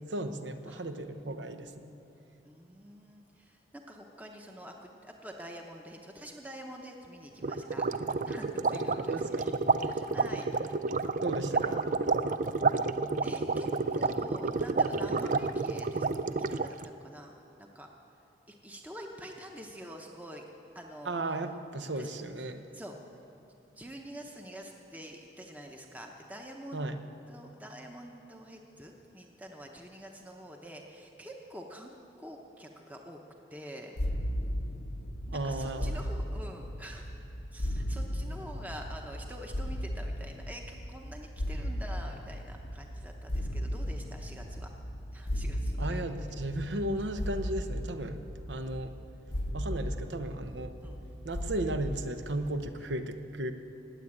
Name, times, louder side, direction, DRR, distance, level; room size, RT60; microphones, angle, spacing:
voice 1, 0.1-1.9 8.9-9.5 11.2-11.8 21.0-22.6 26.7-27.0 35.3-36.0 45.8-48.2 48.5-48.9 49.5-50.7 51.2-53.5, right 1 dB, 75° right, 8 dB, 1.0 m, -35 dB
voice 2, 2.4-7.9 8.2-10.5 11.5-11.8 13.2-16.1 16.4-17.9 18.5-20.5 20.7-21.4 21.8-22.1 22.7-23.0 23.8-26.9 27.3-33.2 33.5-33.9 35.2-37.1 37.5-44.7 45.1-46.2 50.8-51.0, equal, 10° right, 2 dB, 0.9 m, -47 dB
sound 1, 7.4-16.8, right 4 dB, 45° right, 0.4 m, -30 dB
sound 2, 34.0-52.9, equal, 85° left, 0.9 m, -36 dB
19.0 x 8.1 x 8.8 m, 2.7 s
head